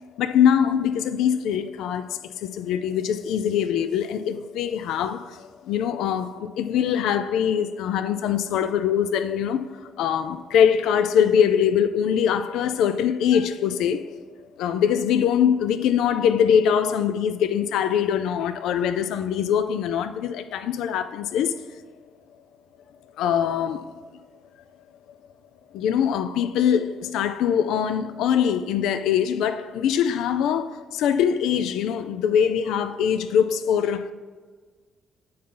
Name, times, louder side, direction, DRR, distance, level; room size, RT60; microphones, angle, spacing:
voice 1, 0.2-14.1 14.6-21.6 23.2-23.8 25.7-34.1, left 8 dB, 85° left, 0.4 m, -23 dB
8.6 x 5.6 x 3.8 m
cardioid pair, 90°, 0 cm